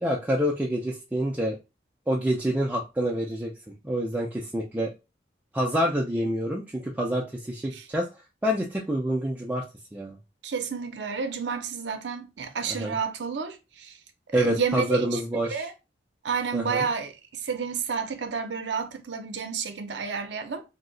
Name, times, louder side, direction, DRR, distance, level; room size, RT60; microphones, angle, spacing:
voice 1, 0.0-1.6 2.1-3.5 3.8-4.9 5.5-8.1 8.4-9.6 9.9-10.2 12.7-13.0 14.3-15.7 16.5-16.9, equal, 10° right, 0.4 m, -27 dB
voice 2, 10.4-14.0 14.3-15.2 15.5-15.7 16.2-20.6, right 5 dB, 70° right, 0.6 m, -30 dB
2.7 x 2.0 x 3.8 m
head